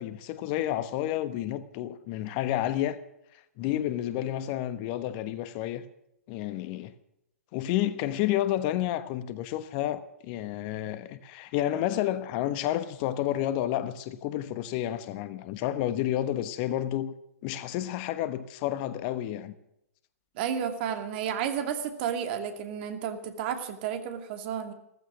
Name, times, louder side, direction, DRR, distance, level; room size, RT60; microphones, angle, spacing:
voice 1, 0.0-3.0 3.6-5.8 6.3-6.9 7.5-17.1 17.4-19.5, left 12 dB, 40° left, 1.2 m, -30 dB
voice 2, 20.4-24.7, right 8 dB, 45° right, 2.5 m, -32 dB
16.0 x 15.0 x 6.2 m
figure-of-eight pair, 115°, 8 cm